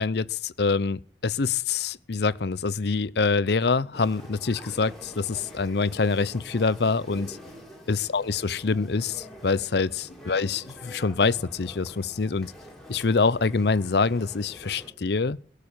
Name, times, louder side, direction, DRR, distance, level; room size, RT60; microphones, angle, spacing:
voice 1, 0.0-7.4 7.9-12.5 12.9-15.4, left 4 dB, 60° left, 0.6 m, -25 dB
sound 1, 3.9-14.9, equal, ahead, 3.9 m, -46 dB
17.0 x 6.7 x 8.8 m
head